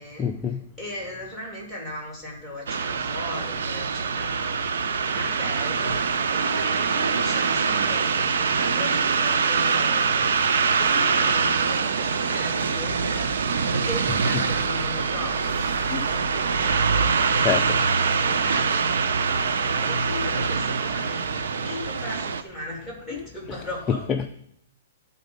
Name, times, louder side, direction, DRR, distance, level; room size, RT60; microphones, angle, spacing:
voice 1, 0.2-0.6 15.9-16.0 17.4-17.6 23.1-23.2 23.9-24.3, left 7 dB, 15° left, 5 dB, 0.4 m, -25 dB
voice 2, 0.8-4.6 5.0-5.9 6.3-8.1 8.4-10.3 10.8-13.3 13.7-17.8 18.2-19.5 19.8-24.0, left 1 dB, 10° right, -3 dB, 3.0 m, -37 dB
sound 1, 2.7-22.4, right 5 dB, 85° right, 0.6 m, -24 dB
12.0 x 4.2 x 5.2 m, 0.72 s
hypercardioid pair, 165°, 0 cm